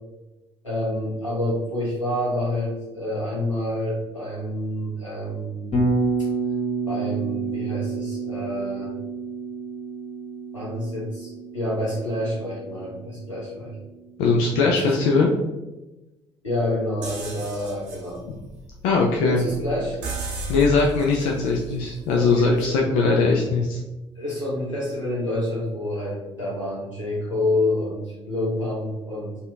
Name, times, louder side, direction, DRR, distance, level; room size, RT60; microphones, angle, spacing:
voice 1, 0.6-5.8 6.2-6.3 6.9-8.9 10.5-13.8 14.7-14.9 16.4-18.2 19.3-20.0 22.1-23.5 24.1-29.4, left 1 dB, 90° left, -7 dB, 0.9 m, -28 dB
Bass guitar, 5.7-13.8, right 3 dB, 40° left, 1.0 m, -29 dB
voice 2, 14.2-15.3 18.8-19.4 20.5-23.8, left 4 dB, 65° left, -1 dB, 0.4 m, -20 dB
sound 1, 17.0-22.8, right 1 dB, 75° right, 0.6 m, -35 dB
4.1 x 2.7 x 2.3 m, 1.1 s
figure-of-eight pair, 45°, 15 cm